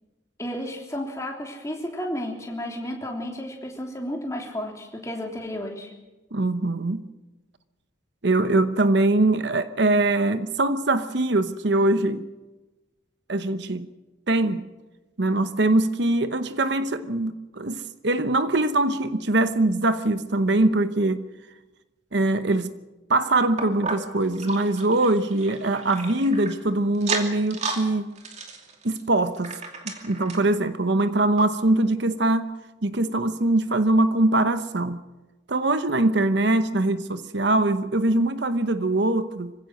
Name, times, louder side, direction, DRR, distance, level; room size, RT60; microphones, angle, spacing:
voice 1, 0.4-5.9, equal, 15° left, 3.2 m, -32 dB
voice 2, 6.3-7.0 8.2-12.3 13.3-13.9 14.3-14.6 15.2-21.2 22.1-22.7 23.1-28.1 28.8-29.5 29.8-35.0 35.5-39.5, right 2 dB, 65° right, 0.9 m, -22 dB
sound 1, 23.6-26.6 26.9-27.8 28.2-30.5 31.0-31.1 31.4-31.5 32.1-32.2, right 4 dB, 35° right, 2.6 m, -33 dB
25.5 x 16.0 x 6.4 m
head